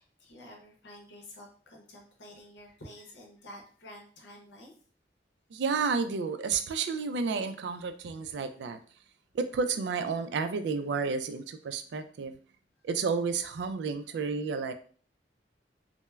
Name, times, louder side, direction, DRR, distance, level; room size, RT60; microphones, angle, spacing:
voice 1, 0.0-4.7 12.8-12.9, left 1 dB, 90° left, 0 dB, 0.7 m, -50 dB
voice 2, 5.5-8.8 9.3-12.4 12.8-14.7, right 5 dB, 75° right, 9 dB, 0.3 m, -31 dB
3.1 x 2.0 x 2.2 m, 0.43 s
head